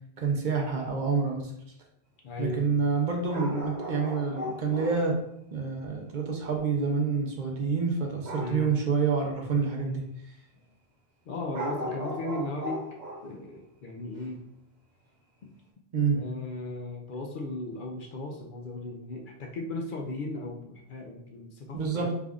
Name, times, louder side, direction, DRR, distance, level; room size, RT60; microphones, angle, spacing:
voice 1, 0.2-1.5 2.4-5.2 5.5-10.3 15.9-16.2 21.7-22.1, right 5 dB, 55° right, 0 dB, 0.7 m, -28 dB
voice 2, 2.2-2.8 8.4-8.7 11.3-12.8 13.2-14.4 15.4-15.5 16.1-22.1, left 2 dB, 60° left, 2 dB, 0.6 m, -36 dB
sound 1, 3.3-5.1 8.2-8.7 10.6-10.7 11.5-13.3 14.2-14.3, equal, 70° right, 1.2 m, -36 dB
3.5 x 2.4 x 3.5 m, 0.76 s
omnidirectional pair, 1.1 m